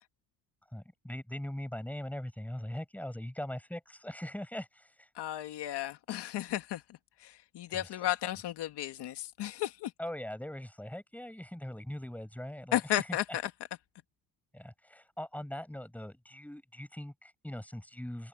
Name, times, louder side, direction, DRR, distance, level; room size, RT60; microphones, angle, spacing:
voice 1, 0.7-5.1 7.7-7.9 10.0-13.4 14.5-18.3, left 1 dB, 5° left, 5.9 m, -41 dB
voice 2, 5.2-9.9 12.7-13.5, left 13 dB, 85° left, 1.9 m, -34 dB
cardioid pair, 115°, 40 cm